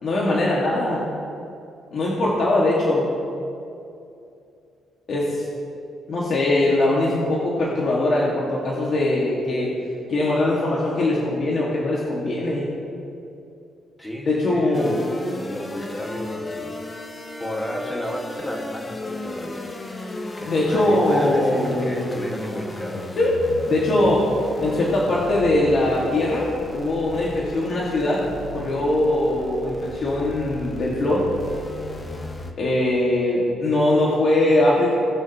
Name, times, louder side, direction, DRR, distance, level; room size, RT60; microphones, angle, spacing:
voice 1, 0.0-1.1 1.9-3.1 5.1-5.4 6.1-9.7 10.1-12.7 14.3-15.0 20.5-22.2 23.2-23.3 23.7-24.3 24.6-31.3 32.6-34.9, left 1 dB, 55° left, -5 dB, 1.9 m, -21 dB
voice 2, 14.0-15.1 15.4-16.7 17.1-17.2 17.4-23.2, equal, 15° left, 1 dB, 1.7 m, -32 dB
sound 1, 14.7-32.5, left 2 dB, 30° left, 1.0 m, -35 dB
19.0 x 6.4 x 3.0 m, 2.6 s
cardioid pair, 90°, 0 cm